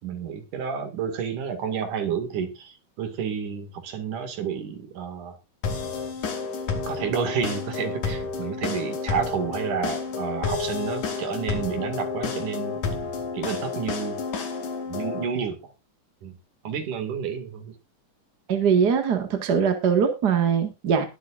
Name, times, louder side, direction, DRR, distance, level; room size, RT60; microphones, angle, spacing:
voice 1, 0.0-5.4 6.9-12.8 13.3-14.2 14.9-15.6 16.2-16.4 16.6-17.7, right 7 dB, 80° right, 7 dB, 3.7 m, -30 dB
sound 1, 5.6-15.2, left 4 dB, 80° left, 4.0 m, -30 dB
voice 2, 18.5-21.0, right 7 dB, 40° right, 6 dB, 1.9 m, -22 dB
21.0 x 8.4 x 2.5 m, 0.25 s
omnidirectional pair, 3.6 m